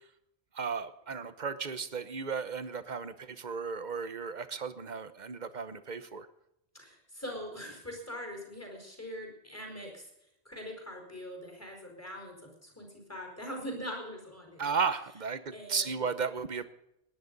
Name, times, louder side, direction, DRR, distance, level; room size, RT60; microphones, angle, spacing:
voice 1, 0.5-6.3 14.6-16.7, right 5 dB, 45° right, 12 dB, 1.1 m, -34 dB
voice 2, 6.7-10.1 10.4-14.7 15.5-15.9, equal, 15° left, 2 dB, 4.6 m, -42 dB
19.0 x 10.5 x 5.4 m, 0.82 s
omnidirectional pair, 1.1 m